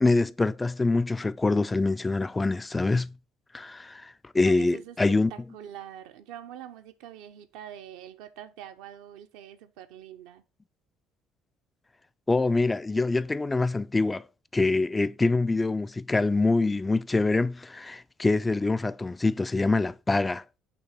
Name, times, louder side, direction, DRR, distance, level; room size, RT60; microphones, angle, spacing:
voice 1, 0.0-3.1 3.5-5.3 12.3-14.2 14.5-20.4, left 3 dB, 20° left, 0.3 m, -25 dB
voice 2, 4.4-5.0 5.3-10.4, right 10 dB, 75° right, 0.6 m, -44 dB
6.1 x 3.0 x 5.5 m
hypercardioid pair, 65°, 0 cm